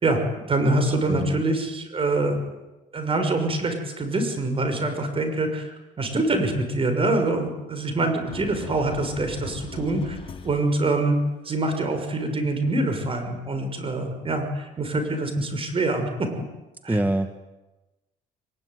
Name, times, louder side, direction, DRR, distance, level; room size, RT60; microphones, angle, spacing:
voice 1, 0.0-2.5 2.9-10.2 10.4-11.2 11.4-16.3 16.8-17.0, right 2 dB, 35° right, 7 dB, 6.0 m, -25 dB
voice 2, 0.8-1.4 16.9-17.4, right 1 dB, 10° right, 9 dB, 1.5 m, -26 dB
sound 1, 8.3-11.0, left 3 dB, 35° left, 2.7 m, -40 dB
23.0 x 21.0 x 9.5 m, 1.1 s
cardioid pair, 110°, 17 cm